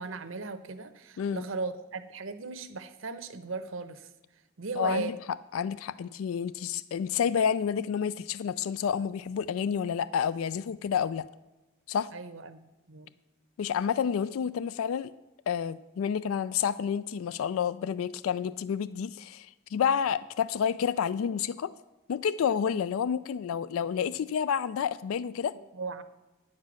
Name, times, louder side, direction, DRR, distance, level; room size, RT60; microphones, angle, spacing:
voice 1, 0.0-4.1 4.6-5.1 12.1-13.1 25.5-26.0, right 4 dB, 70° right, 11 dB, 0.8 m, -37 dB
voice 2, 4.8-5.1 5.5-11.3 11.9-12.1 13.6-15.1 15.5-21.7 22.1-25.6, left 7 dB, 90° left, 17 dB, 0.3 m, -29 dB
9.7 x 7.5 x 6.2 m, 1.0 s
head